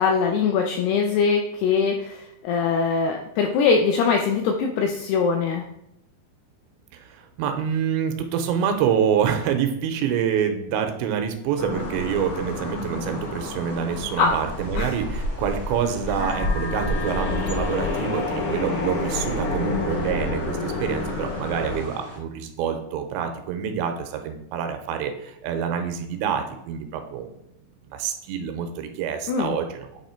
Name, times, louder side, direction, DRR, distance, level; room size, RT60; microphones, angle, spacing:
voice 1, 0.0-5.7 14.2-14.3 14.8-14.9 29.3-29.6, left 5 dB, 85° left, 3 dB, 2.3 m, -22 dB
voice 2, 6.9-27.3 27.9-30.0, right 7 dB, 80° right, 6 dB, 2.8 m, -26 dB
sound 1, 11.6-15.9 16.2-21.8, left 3 dB, 70° left, 1.9 m, -30 dB
sound 2, 11.7-22.2, left 1 dB, 20° left, 0.4 m, -34 dB
8.8 x 3.0 x 4.3 m, 0.80 s
omnidirectional pair, 5.2 m